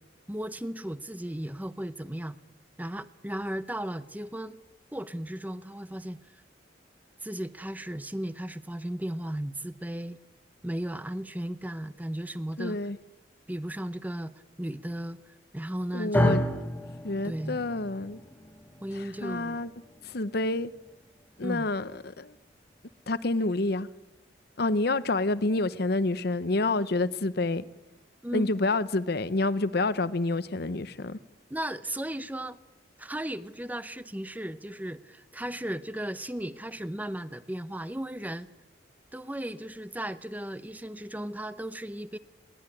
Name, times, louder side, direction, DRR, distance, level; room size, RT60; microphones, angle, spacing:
voice 1, 0.3-2.4 2.8-4.6 4.9-6.2 7.2-10.2 10.6-12.8 13.5-14.3 14.6-16.4 17.2-17.6 18.8-19.6 21.4-21.7 28.2-28.5 31.5-32.6 33.0-38.5 39.1-42.2, right 1 dB, 10° right, 0.7 m, -35 dB
voice 2, 12.6-13.0 15.9-16.4 17.0-18.2 18.9-19.7 20.0-20.7 21.4-22.3 23.1-23.9 24.6-27.6 28.3-31.2, left 2 dB, 55° left, 0.8 m, -28 dB
sound 1, 16.1-24.4, left 1 dB, 10° left, 1.3 m, -34 dB
21.0 x 18.0 x 9.9 m
head